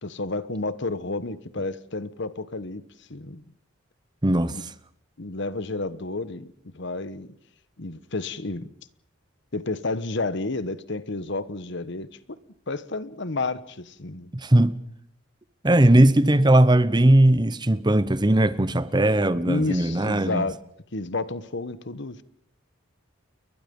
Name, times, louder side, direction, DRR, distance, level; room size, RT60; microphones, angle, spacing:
voice 1, 0.0-2.8 3.1-3.5 4.5-4.6 5.2-7.4 7.8-8.7 9.5-12.1 12.7-14.3 15.9-16.1 19.4-20.6 20.9-22.2, left 3 dB, 60° left, 1.2 m, -31 dB
voice 2, 4.2-4.7 14.3-14.8 15.6-20.5, right 1 dB, 20° right, 0.9 m, -19 dB
30.0 x 22.5 x 5.4 m
head